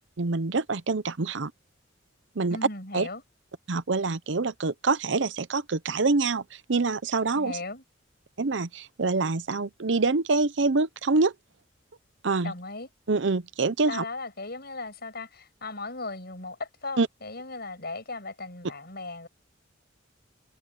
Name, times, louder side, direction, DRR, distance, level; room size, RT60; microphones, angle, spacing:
voice 1, 0.2-1.5 2.4-2.6 2.9-3.1 3.7-7.6 8.4-11.3 12.2-12.5 13.1-14.0 17.0-17.1, right 3 dB, 65° right, 0.7 m, -26 dB
voice 2, 2.5-3.2 7.4-7.8 12.4-12.9 13.9-19.3, left 3 dB, 55° left, 7.1 m, -37 dB
head